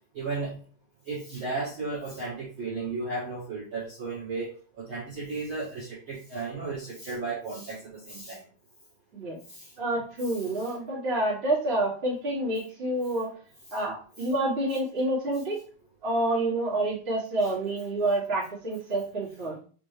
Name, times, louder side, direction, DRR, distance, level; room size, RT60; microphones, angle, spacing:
voice 1, 0.1-0.6 1.0-8.4 9.5-9.7 10.6-10.7 13.7-13.8, right 3 dB, 80° right, -8 dB, 1.1 m, -34 dB
voice 2, 9.8-13.3 13.7-15.5 16.0-19.5, right 1 dB, 30° right, -7 dB, 1.2 m, -28 dB
6.0 x 2.7 x 3.2 m, 0.40 s
omnidirectional pair, 4.6 m